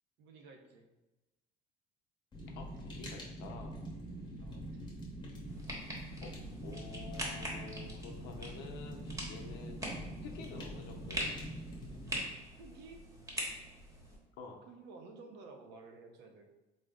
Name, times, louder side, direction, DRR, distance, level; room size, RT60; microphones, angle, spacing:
voice 1, 0.2-0.9 4.4-4.7 12.6-13.0 14.7-16.5, right 3 dB, 80° right, 4 dB, 0.6 m, -53 dB
Fire, 2.3-12.2, right 1 dB, 25° left, 0.8 m, -45 dB
voice 2, 2.5-3.8 6.2-6.3 6.6-9.8 10.2-11.3 14.4-14.6, left 4 dB, 75° left, 2 dB, 0.6 m, -49 dB
sound 1, 5.5-14.2, equal, 15° right, 0.9 m, -43 dB
3.8 x 2.0 x 3.5 m, 1.1 s
cardioid pair, 120°, 18 cm